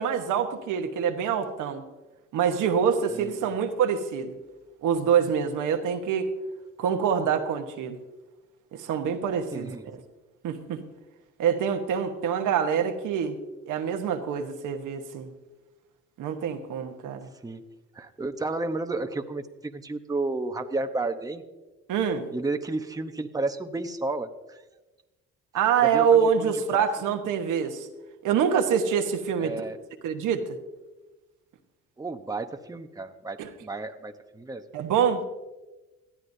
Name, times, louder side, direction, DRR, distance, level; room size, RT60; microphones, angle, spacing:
voice 1, 0.0-1.8 2.3-4.3 4.8-6.3 6.8-8.0 8.7-10.0 10.4-10.8 11.4-13.3 13.7-15.3 16.2-17.3 21.9-22.3 25.5-27.9 28.2-29.6 30.0-30.6 33.4-33.5 34.7-35.2, right 7 dB, 85° right, 5 dB, 1.2 m, -25 dB
voice 2, 9.5-9.9 17.4-17.6 17.9-21.4 22.3-24.6 25.8-26.8 29.4-29.8 32.0-34.6, right 2 dB, 10° right, 6 dB, 0.9 m, -32 dB
19.5 x 13.0 x 2.7 m, 1.1 s
cardioid pair, 90°, 30 cm